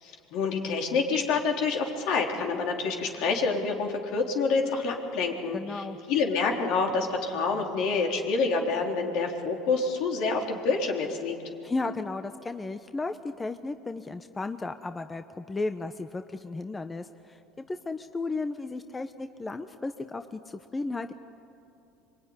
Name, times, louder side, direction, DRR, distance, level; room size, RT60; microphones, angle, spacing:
voice 1, 0.0-11.4, left 4 dB, 65° left, 1 dB, 3.8 m, -27 dB
voice 2, 5.5-6.0 11.6-17.4 17.7-21.1, left 3 dB, 20° left, 8 dB, 0.9 m, -34 dB
26.0 x 23.0 x 9.8 m, 2.8 s
supercardioid pair, 100°, 0 cm